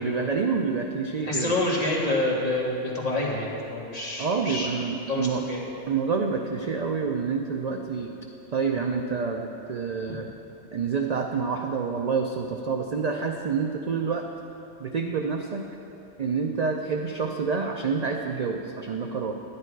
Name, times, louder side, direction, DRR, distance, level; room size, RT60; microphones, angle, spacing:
voice 1, 0.0-1.6 4.2-5.4 5.9-8.1 8.5-10.3 10.7-14.3 14.8-15.7 16.2-19.3, right 5 dB, 60° right, 3 dB, 0.4 m, -28 dB
voice 2, 1.2-4.8 5.1-5.6, left 2 dB, 30° left, -5 dB, 1.9 m, -27 dB
10.5 x 10.0 x 4.6 m, 3.0 s
omnidirectional pair, 1.3 m